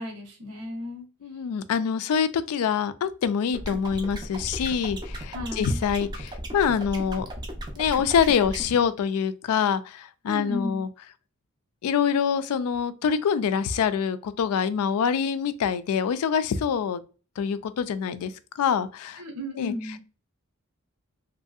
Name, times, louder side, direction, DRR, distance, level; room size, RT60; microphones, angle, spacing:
voice 1, 0.0-1.1 5.3-5.8 10.2-10.8 19.2-20.0, left 1 dB, 85° right, 1.0 m, -34 dB
voice 2, 1.2-7.3 7.8-10.9 11.8-17.0 17.4-18.3 18.6-19.2 19.6-19.7, left 7 dB, 85° left, 0.3 m, -25 dB
sound 1, 3.5-8.6, right 1 dB, 20° right, 0.4 m, -36 dB
3.0 x 2.6 x 2.4 m
head